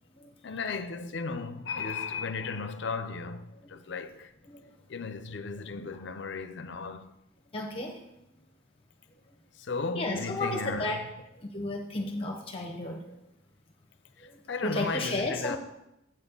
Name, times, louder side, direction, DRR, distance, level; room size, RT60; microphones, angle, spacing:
voice 1, 0.4-4.3 4.9-7.1 9.6-11.0 14.5-15.6, left 4 dB, 60° left, 0.6 m, -35 dB
voice 2, 7.5-7.9 9.9-11.0 11.4-13.0 14.6-15.6, left 2 dB, 30° left, 0.9 m, -32 dB
8.4 x 4.2 x 7.1 m
head